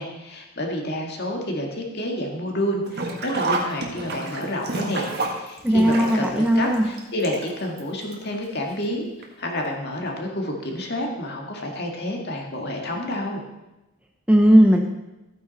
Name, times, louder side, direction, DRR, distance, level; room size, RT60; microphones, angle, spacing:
voice 1, 0.0-13.4, left 1 dB, 45° left, 0 dB, 2.1 m, -29 dB
Sink (filling or washing), 2.9-7.8 8.1-8.2 9.2-9.3 9.6-9.7, right 2 dB, 45° right, 1.7 m, -29 dB
voice 2, 5.6-6.9 14.3-14.8, equal, 5° right, 2 dB, 0.8 m, -16 dB
14.0 x 9.3 x 4.2 m, 1.0 s
head